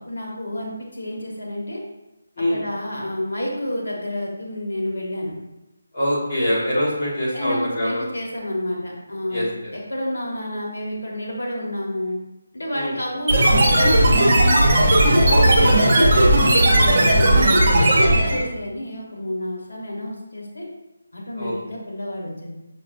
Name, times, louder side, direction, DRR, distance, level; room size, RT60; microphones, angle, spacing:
voice 1, 0.0-1.8 2.5-5.3 7.3-12.2 12.5-14.4 15.2-20.7 21.1-22.5, left 1 dB, 90° left, -2 dB, 1.3 m, -29 dB
voice 2, 5.9-8.1 9.3-9.7 12.7-13.0 15.3-15.8 16.4-16.5 21.4-21.5, equal, 30° left, -9 dB, 1.4 m, -24 dB
sound 1, 13.3-18.4, right 1 dB, 35° right, 0.9 m, -16 dB
5.7 x 2.5 x 2.6 m, 0.97 s
figure-of-eight pair, 170°, 0 cm